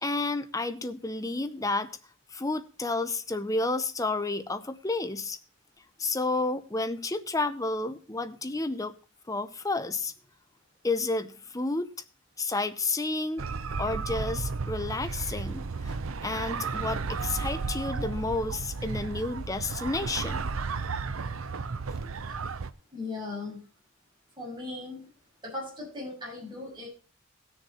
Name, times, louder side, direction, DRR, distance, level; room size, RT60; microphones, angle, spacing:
voice 1, 0.0-2.0 2.3-5.4 6.0-9.0 9.3-10.1 10.8-11.9 12.4-13.5 13.8-20.5 22.0-22.1, left 3 dB, 15° left, 0.7 m, -31 dB
sound 1, 13.4-22.7, right 4 dB, 75° right, 0.7 m, -33 dB
voice 2, 22.9-23.6 24.4-25.1 25.4-26.9, left 3 dB, 20° right, 6.4 m, -38 dB
17.0 x 6.6 x 4.2 m
head